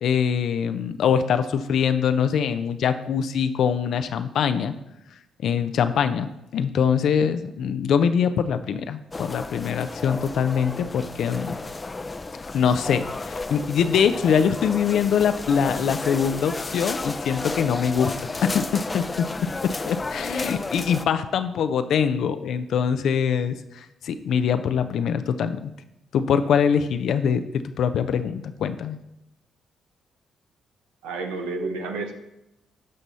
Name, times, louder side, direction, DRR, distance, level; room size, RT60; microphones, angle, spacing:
voice 1, 0.0-4.7 5.4-11.6 12.5-18.1 18.4-19.3 19.6-25.7 26.1-29.0, left 7 dB, 65° left, 10 dB, 0.5 m, -23 dB
sound 1, 9.1-21.1, left 3 dB, 30° left, 0.6 m, -32 dB
voice 2, 31.0-32.1, right 3 dB, 80° right, 4 dB, 1.0 m, -30 dB
12.0 x 5.4 x 4.1 m, 0.86 s
hypercardioid pair, 50°, 0 cm